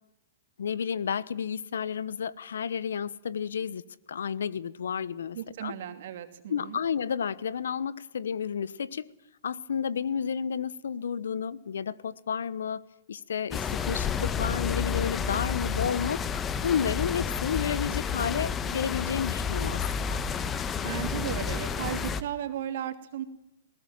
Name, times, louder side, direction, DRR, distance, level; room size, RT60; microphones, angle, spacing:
voice 1, 0.6-3.8 4.1-5.7 6.5-9.1 9.4-12.8 13.1-16.2 16.6-20.2, left 7 dB, 75° left, 1.0 m, -31 dB
voice 2, 5.3-6.8 20.8-23.2, right 11 dB, 60° right, 2.7 m, -35 dB
sound 1, 13.5-22.2, left 7 dB, 20° left, 1.2 m, -30 dB
20.5 x 19.0 x 7.4 m
hypercardioid pair, 120°, 0 cm